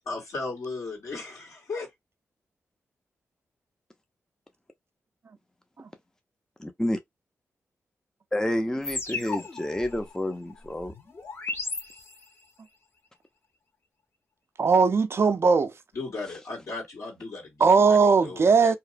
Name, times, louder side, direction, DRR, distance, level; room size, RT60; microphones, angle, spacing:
voice 1, 0.0-1.9 15.9-18.8, left 3 dB, 70° left, 1.7 m, -36 dB
voice 2, 6.6-7.0 8.3-10.9, left 1 dB, 10° left, 0.5 m, -29 dB
sound 1, 8.8-12.5, left 3 dB, 45° left, 0.9 m, -36 dB
voice 3, 14.6-15.7 17.6-18.7, right 5 dB, 50° right, 0.4 m, -19 dB
2.8 x 2.0 x 2.5 m
cardioid pair, 50°, 5 cm